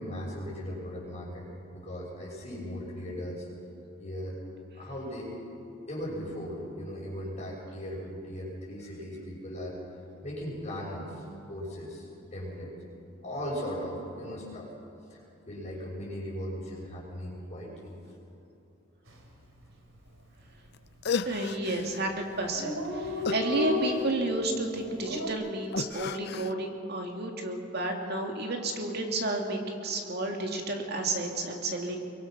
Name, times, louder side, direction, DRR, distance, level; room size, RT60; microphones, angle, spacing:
voice 1, 0.0-3.5 4.0-4.4 4.7-5.3 5.9-12.8 13.2-14.7 15.1-15.2 15.5-17.9, equal, 30° left, -9 dB, 6.1 m, -38 dB
Dog, 19.1-19.3 19.6-19.7 20.0-20.7 21.3-21.5 21.8-21.9 22.1-22.2 22.4-25.3, left 2 dB, 70° right, 3.2 m, -33 dB
sound 1, 20.7-20.8 21.0-22.0 23.2-24.3 25.7-26.5, left 5 dB, 50° left, 0.5 m, -34 dB
voice 2, 21.3-32.1, right 2 dB, 50° right, 2 dB, 2.5 m, -31 dB
23.5 x 22.0 x 6.2 m, 2.8 s
head